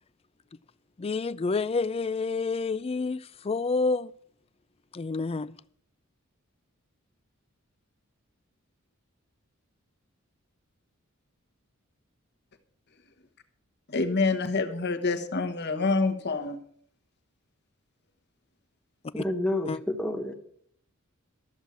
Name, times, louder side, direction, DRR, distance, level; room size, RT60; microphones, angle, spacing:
voice 1, 1.0-4.1 4.9-5.5 19.2-19.3 19.7-19.8, left 4 dB, 30° left, 0.4 m, -28 dB
voice 2, 13.9-16.6, left 3 dB, 55° left, 1.3 m, -27 dB
voice 3, 19.1-20.3, left 1 dB, 5° left, 1.3 m, -29 dB
13.5 x 7.2 x 7.4 m
head